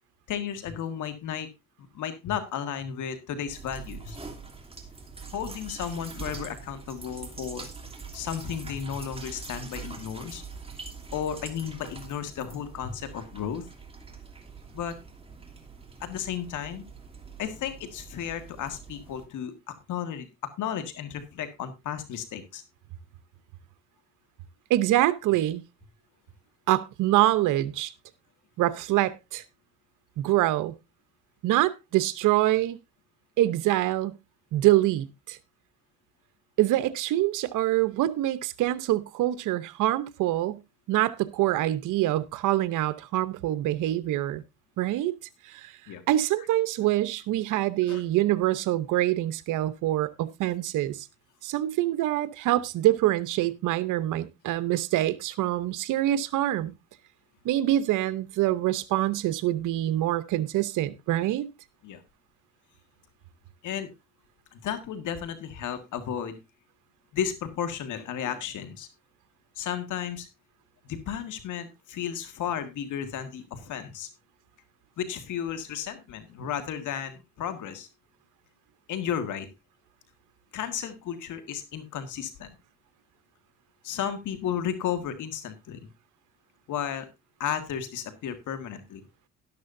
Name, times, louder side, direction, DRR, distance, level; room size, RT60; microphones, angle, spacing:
voice 1, 0.3-1.5 1.9-4.2 5.3-7.7 8.1-10.4 11.1-13.7 14.7-15.0 16.0-16.9 17.4-20.3 20.6-22.6 45.9-46.0 47.9-48.0 61.8-62.0 63.6-63.9 64.5-66.4 67.1-68.9 69.5-70.3 70.8-74.1 75.0-77.9 78.9-79.5 80.5-82.5 83.8-85.9 86.7-87.1 87.4-89.0, left 9 dB, 80° left, 1.8 m, -33 dB
sound 1, 3.5-19.3, right 4 dB, 20° right, 2.9 m, -43 dB
voice 2, 24.7-25.6 26.7-27.9 28.6-29.4 30.2-30.7 31.4-32.8 33.4-34.2 34.5-35.4 36.6-40.6 40.9-44.4 44.8-45.1 45.5-45.7 46.1-51.1 51.4-56.7 57.4-61.5, right 14 dB, 90° right, 0.8 m, -25 dB
12.5 x 11.5 x 2.6 m
cardioid pair, 90°, 30 cm